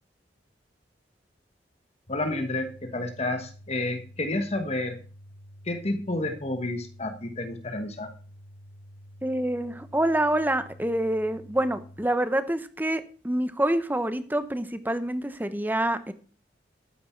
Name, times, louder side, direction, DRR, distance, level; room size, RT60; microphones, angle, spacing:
sound 1, 2.1-12.1, equal, 90° left, 3.5 m, -49 dB
voice 1, 2.1-5.0 5.6-8.1, left 2 dB, 35° left, 7 dB, 1.3 m, -30 dB
voice 2, 9.2-16.1, right 1 dB, 10° right, 11 dB, 0.9 m, -27 dB
13.0 x 9.6 x 4.5 m, 0.41 s
head